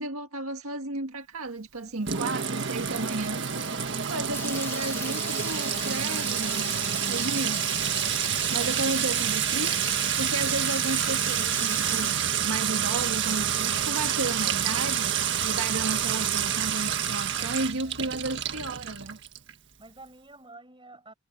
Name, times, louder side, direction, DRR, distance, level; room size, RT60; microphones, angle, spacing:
voice 1, 0.0-3.4 4.1-6.8 7.1-7.9 8.5-15.1 15.4-19.2, right 2 dB, 80° right, 1.8 m, -33 dB
voice 2, 1.8-2.5 17.3-18.8 19.8-21.1, right 2 dB, 20° right, 5.9 m, -52 dB
Sink (filling or washing) / Trickle dribble / Fill (with liquid), 2.1-19.5, right 8 dB, 55° right, 1.7 m, -28 dB
Water tap faucet / Liquid, 4.3-12.1, left 4 dB, 10° left, 0.8 m, -38 dB
head